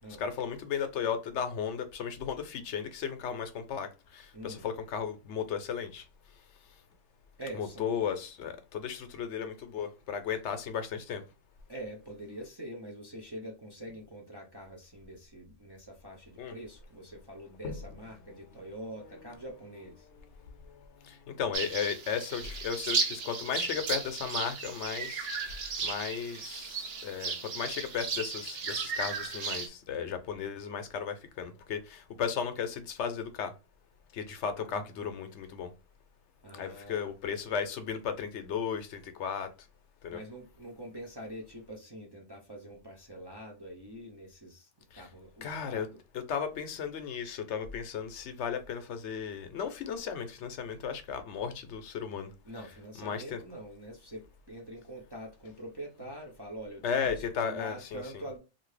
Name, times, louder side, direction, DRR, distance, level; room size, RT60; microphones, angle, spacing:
voice 1, 0.2-6.0 7.5-11.2 16.4-16.5 17.6-17.8 20.2-20.3 21.0-25.3 25.8-33.5 34.1-35.7 36.5-39.5 40.0-40.2 44.9-45.1 45.4-45.9 46.1-52.3 53.0-53.4 56.8-58.0, left 7 dB, 75° left, 0.9 m, -35 dB
voice 2, 4.3-4.6 7.4-8.0 10.4-10.5 11.7-20.1 34.6-35.1 36.4-37.1 40.1-46.0 52.4-58.4, right 1 dB, 30° right, 0.5 m, -45 dB
sound 1, 21.5-29.7, right 5 dB, 60° right, 0.9 m, -35 dB
2.7 x 2.5 x 3.1 m
omnidirectional pair, 1.2 m